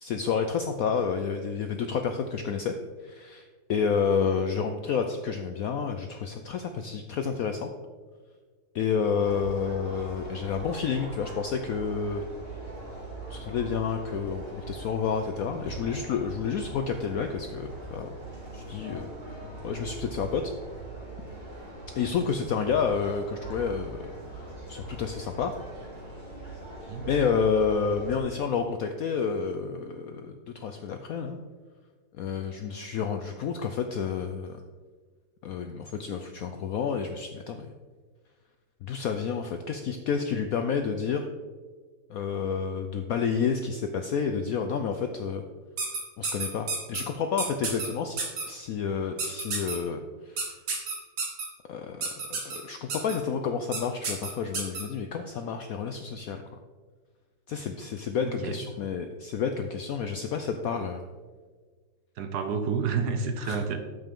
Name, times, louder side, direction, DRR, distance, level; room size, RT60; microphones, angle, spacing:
voice 1, 0.0-2.7 3.0-7.7 8.7-12.2 13.3-18.1 18.5-19.1 19.6-20.5 22.0-25.5 27.0-31.4 32.1-34.6 35.4-37.7 38.8-41.3 42.1-45.4 46.2-48.2 48.5-50.5 51.7-52.0 52.3-56.4 57.5-61.0 63.4-63.6, left 6 dB, 75° left, 6 dB, 0.8 m, -30 dB
sound 1, 9.2-28.2, right 2 dB, 30° right, 2.2 m, -41 dB
sound 2, 45.8-47.0 47.4-47.9 48.2-48.4 49.2-49.8 50.4-51.4 52.0-52.6 52.9-53.1 53.7-53.8 54.0-54.8, right 4 dB, 90° right, 2.4 m, -30 dB
voice 2, 58.2-58.7 62.2-63.8, right 5 dB, 65° right, 6 dB, 1.2 m, -29 dB
8.7 x 7.5 x 3.6 m, 1.5 s
omnidirectional pair, 2.0 m